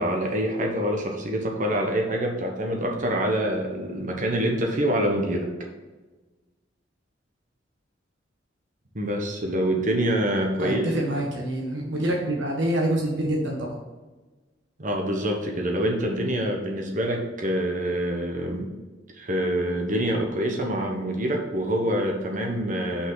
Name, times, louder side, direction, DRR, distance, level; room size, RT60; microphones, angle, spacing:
voice 1, 0.0-5.5 8.9-10.9 14.8-18.7 19.1-23.1, right 1 dB, 45° right, 1 dB, 1.2 m, -26 dB
voice 2, 10.6-13.8, right 1 dB, 80° right, -1 dB, 1.4 m, -26 dB
6.1 x 5.7 x 3.9 m, 1.2 s
head